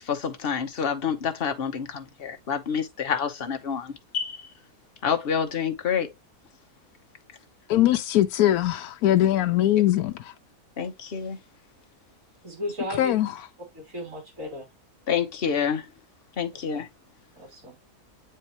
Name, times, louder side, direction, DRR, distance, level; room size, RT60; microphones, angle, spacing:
voice 1, 0.0-4.5 5.0-6.1 10.8-11.4 15.1-15.9 16.4-16.9, left 7 dB, 45° left, 1.1 m, -28 dB
voice 2, 7.7-10.3 13.0-13.3, left 13 dB, 75° left, 1.1 m, -21 dB
voice 3, 12.4-13.1 13.7-14.7 17.4-17.8, left 1 dB, 55° right, 3.9 m, -34 dB
8.4 x 4.5 x 3.0 m
omnidirectional pair, 1.6 m